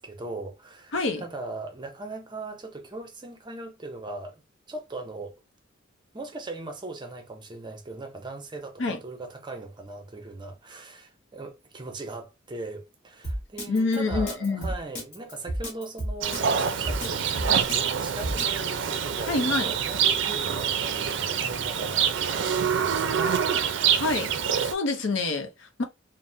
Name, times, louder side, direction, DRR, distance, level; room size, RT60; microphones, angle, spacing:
voice 1, 0.0-4.4 4.7-5.4 6.1-23.6, right 2 dB, 25° right, 0.6 m, -39 dB
voice 2, 0.9-1.2 8.8-9.0 13.7-14.7 19.3-19.7 24.0-25.8, left 3 dB, 65° left, 0.6 m, -27 dB
Drum kit, 13.2-18.6, equal, 40° left, 1.1 m, -31 dB
Livestock farm animals working animals, 16.2-24.7, right 7 dB, 65° right, 0.4 m, -26 dB
3.4 x 2.1 x 2.6 m
head